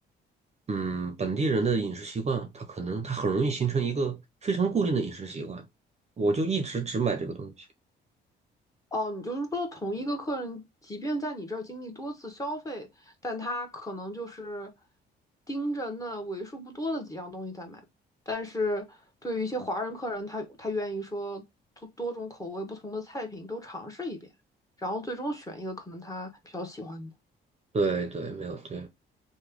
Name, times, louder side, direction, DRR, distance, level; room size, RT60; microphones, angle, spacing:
voice 1, 0.7-5.6 6.2-7.5 27.7-28.9, right 4 dB, 35° right, 0.6 m, -28 dB
voice 2, 8.9-14.7 15.5-17.8 18.3-21.4 21.8-24.2 24.8-27.1, equal, 15° left, 1.0 m, -34 dB
3.1 x 2.1 x 3.5 m
cardioid pair, 90°, 20 cm